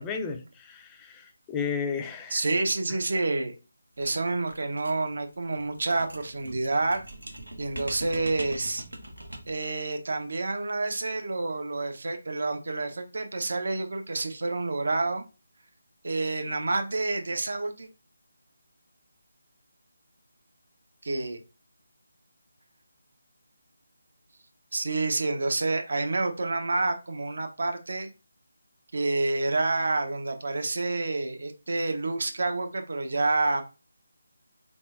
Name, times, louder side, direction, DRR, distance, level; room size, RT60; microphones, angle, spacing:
voice 1, 0.0-2.4, left 6 dB, 15° left, 0.4 m, -33 dB
voice 2, 2.3-3.5 4.0-7.0 7.6-8.8 9.5-15.2 16.0-17.9 21.0-21.4 24.7-28.1 28.9-33.6, right 3 dB, 55° right, 0.8 m, -28 dB
sound 1, 4.0-9.7, right 1 dB, 80° right, 1.0 m, -42 dB
4.0 x 3.7 x 2.5 m
figure-of-eight pair, 155°, 0 cm